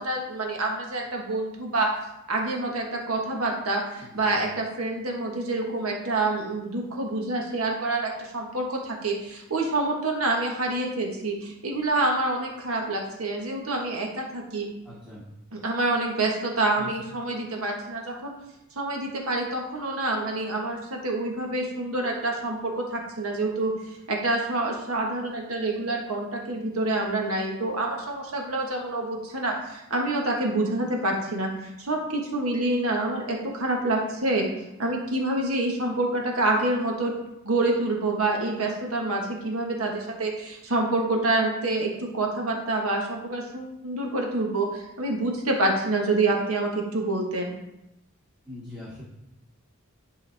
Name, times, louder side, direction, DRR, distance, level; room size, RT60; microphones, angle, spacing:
voice 1, 0.0-1.9 2.3-14.6 15.5-18.3 18.8-34.5 34.8-37.1 37.4-47.5, right 2 dB, 75° right, 0 dB, 1.5 m, -27 dB
voice 2, 4.0-4.4 14.8-15.2 16.8-16.9 48.4-49.0, left 1 dB, 5° right, -11 dB, 2.3 m, -42 dB
11.0 x 4.8 x 3.5 m, 0.89 s
head